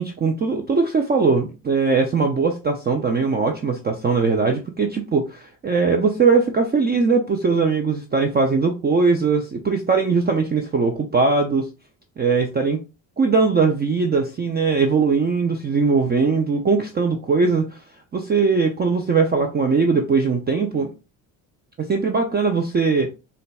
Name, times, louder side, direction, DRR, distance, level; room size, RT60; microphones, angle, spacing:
voice 1, 0.0-11.7 12.2-12.8 13.2-17.8 18.1-20.9 21.8-23.1, right 4 dB, 25° right, 4 dB, 0.4 m, -20 dB
3.8 x 2.3 x 2.3 m, 0.30 s
supercardioid pair, 80°, 45 cm